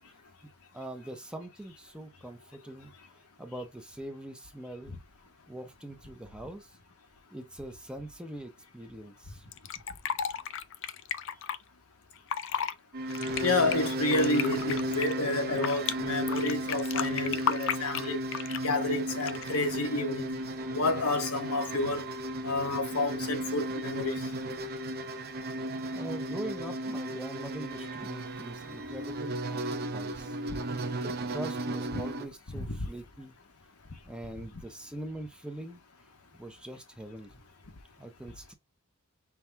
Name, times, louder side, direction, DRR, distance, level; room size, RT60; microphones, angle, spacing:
voice 1, 0.7-2.9 3.4-5.0 5.5-6.8 7.3-9.4 25.9-30.4 31.0-33.4 34.0-35.8 36.4-37.4 38.0-38.5, right 1 dB, 5° right, 0.7 m, -43 dB
Fill (with liquid), 9.5-11.6 12.2-12.7 13.1-15.9 16.3-18.7 19.2-19.6, left 8 dB, 60° left, 0.4 m, -33 dB
sound 1, 12.9-32.3, right 1 dB, 45° right, 0.6 m, -34 dB
voice 2, 13.4-18.2 18.6-20.4 20.7-22.1 22.4-24.3 32.6-32.9, left 2 dB, 85° left, 1.1 m, -30 dB
5.9 x 2.3 x 3.4 m
head